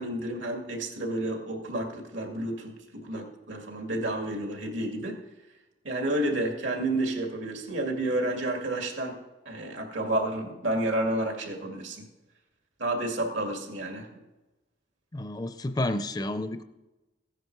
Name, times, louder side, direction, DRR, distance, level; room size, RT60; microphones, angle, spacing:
voice 1, 0.0-5.2 5.8-9.2 9.5-12.1 12.8-14.2, right 1 dB, 85° right, 2 dB, 2.2 m, -30 dB
voice 2, 15.1-16.6, left 1 dB, 20° left, 10 dB, 0.4 m, -30 dB
15.5 x 9.9 x 4.7 m, 1.1 s
head